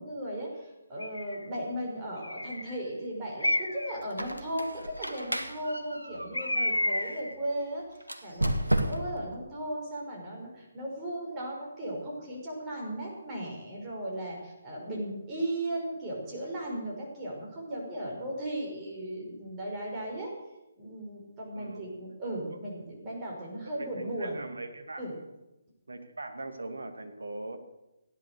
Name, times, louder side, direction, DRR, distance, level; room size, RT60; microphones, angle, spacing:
voice 1, 0.0-20.3 20.8-24.5 25.0-25.2, right 1 dB, 20° right, -3 dB, 5.7 m, -36 dB
Bird, 1.0-1.5 2.2-2.8 3.4-4.0 6.3-7.3, left 1 dB, 85° left, 0.8 m, -30 dB
Squeak, 4.0-7.2 8.0-9.3, right 1 dB, 90° right, 1.7 m, -33 dB
voice 2, 21.5-21.9 22.5-22.6 23.8-25.0 25.9-27.6, right 2 dB, 70° right, 6 dB, 2.2 m, -40 dB
16.5 x 11.0 x 6.9 m, 0.98 s
figure-of-eight pair, 140°, 0 cm